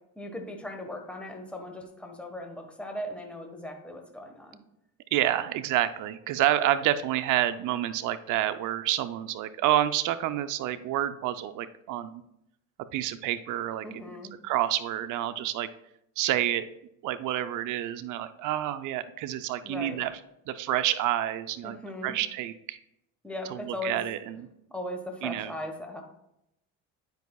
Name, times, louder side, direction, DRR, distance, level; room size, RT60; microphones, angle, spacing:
voice 1, 0.1-4.6 13.8-14.3 19.6-20.0 21.6-22.2 23.2-24.0 24.7-26.0, left 1 dB, 5° left, 3 dB, 1.2 m, -38 dB
voice 2, 5.1-12.2 12.9-13.8 14.4-15.7 16.2-16.7 17.0-20.1 20.5-21.8 22.0-22.8 23.5-24.4 25.2-25.5, right 12 dB, 60° right, 11 dB, 0.5 m, -28 dB
10.5 x 4.9 x 2.3 m, 0.80 s
supercardioid pair, 85°, 35 cm